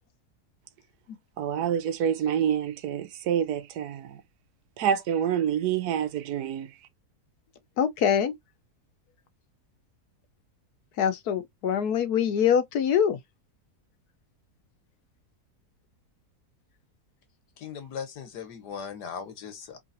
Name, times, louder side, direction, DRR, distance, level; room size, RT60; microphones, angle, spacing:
voice 1, 1.4-4.2 4.8-6.7, right 9 dB, 75° right, 1.2 m, -27 dB
voice 2, 7.8-8.3 11.0-13.2, left 8 dB, 75° left, 1.3 m, -24 dB
voice 3, 17.6-19.8, left 7 dB, 90° left, 1.7 m, -38 dB
4.8 x 3.4 x 2.7 m
omnidirectional pair, 1.7 m